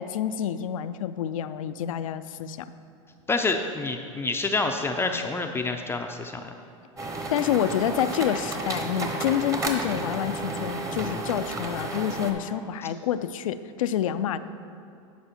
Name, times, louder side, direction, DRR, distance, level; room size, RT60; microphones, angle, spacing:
voice 1, 0.0-2.7 7.3-14.4, left 10 dB, 85° left, 13 dB, 0.4 m, -28 dB
voice 2, 3.3-6.5, left 3 dB, 15° left, 4 dB, 0.4 m, -27 dB
sound 1, 7.0-12.3, right 2 dB, 20° right, 1.0 m, -32 dB
11.5 x 4.8 x 4.4 m, 2.6 s
hypercardioid pair, 105°, 17 cm